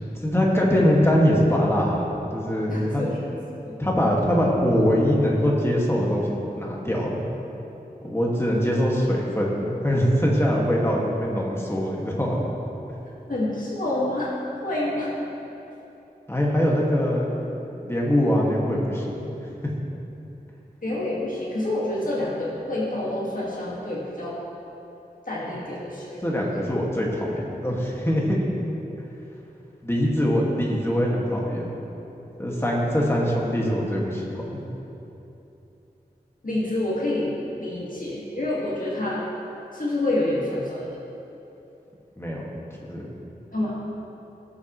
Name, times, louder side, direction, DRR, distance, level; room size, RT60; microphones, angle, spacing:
voice 1, 0.2-3.0 3.8-7.2 8.0-12.4 16.3-17.3 17.8-19.3 19.6-19.7 26.2-28.2 29.8-31.7 32.4-34.6 42.2-42.4 42.8-43.1, equal, 15° left, -3 dB, 2.0 m, -23 dB
voice 2, 2.7-3.1 3.7-3.8 13.3-14.3 14.6-15.1 20.8-24.4 25.3-26.6 36.4-37.3 37.5-39.2 39.7-40.8 43.5-43.8, left 1 dB, 55° left, -6 dB, 2.0 m, -27 dB
18.0 x 7.3 x 3.2 m, 3.0 s
wide cardioid pair, 65°, 17 cm